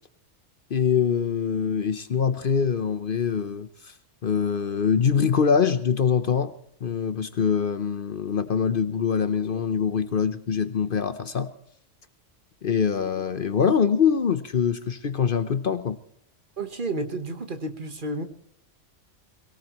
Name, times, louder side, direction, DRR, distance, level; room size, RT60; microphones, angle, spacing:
voice 1, 0.7-3.9 4.2-6.5 6.8-11.5 12.6-16.0, left 7 dB, 50° left, 11 dB, 0.9 m, -24 dB
voice 2, 16.6-18.2, right 2 dB, 45° right, 7 dB, 1.4 m, -31 dB
22.5 x 17.5 x 3.0 m, 0.69 s
omnidirectional pair, 1.2 m